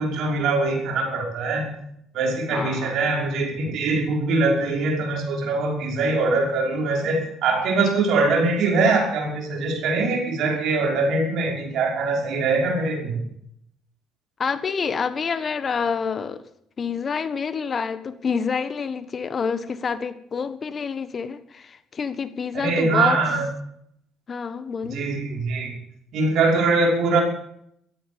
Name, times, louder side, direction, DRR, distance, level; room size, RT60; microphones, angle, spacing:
voice 1, 0.0-1.7 2.1-13.2 22.5-23.5 24.9-25.8 26.1-27.2, right 3 dB, 65° right, 1 dB, 5.5 m, -22 dB
voice 2, 2.5-2.9 14.4-16.4 16.8-23.2 24.3-25.0, left 6 dB, 40° left, 13 dB, 1.4 m, -27 dB
14.0 x 13.5 x 7.1 m, 0.71 s
hypercardioid pair, 60°, 0 cm